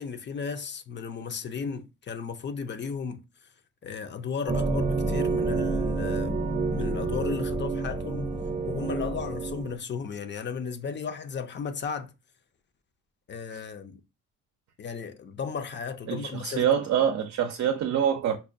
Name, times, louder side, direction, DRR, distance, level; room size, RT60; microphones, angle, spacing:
voice 1, 0.0-3.2 3.8-6.4 6.7-8.3 8.6-12.1 13.3-14.0 14.8-16.6, left 6 dB, 40° left, 0.5 m, -35 dB
sound 1, 4.5-9.8, right 3 dB, 25° right, 0.7 m, -28 dB
voice 2, 16.1-18.4, right 9 dB, 55° right, 0.5 m, -25 dB
5.2 x 2.1 x 2.6 m
cardioid pair, 90°, 30 cm